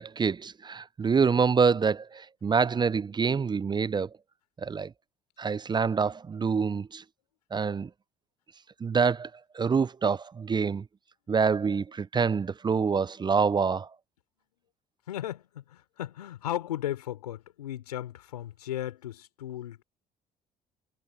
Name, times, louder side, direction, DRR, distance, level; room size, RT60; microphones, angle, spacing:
voice 1, 0.0-4.1 4.6-4.9 5.4-7.0 7.5-7.9 8.8-9.3 9.5-10.8 11.3-13.9, right 5 dB, 25° right, 0.5 m, -26 dB
voice 2, 15.1-19.8, left 12 dB, 90° left, 3.6 m, -36 dB
hypercardioid pair, 60°, 19 cm